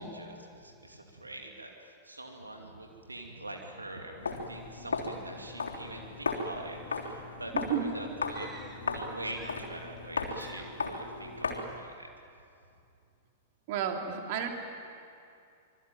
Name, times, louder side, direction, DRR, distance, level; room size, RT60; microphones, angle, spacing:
voice 1, 0.0-12.1, right 1 dB, 85° right, 2 dB, 2.6 m, -44 dB
Walk footsteps, 4.2-11.8, left 4 dB, 70° left, 3.5 m, -36 dB
voice 2, 7.5-7.9 13.7-14.5, right 8 dB, 45° right, 3 dB, 2.9 m, -32 dB
sound 1, 8.3-9.0 9.3-10.0 10.3-10.9, right 2 dB, 15° right, 3.0 m, -52 dB
26.0 x 24.0 x 9.1 m, 2.5 s
figure-of-eight pair, 100°, 0 cm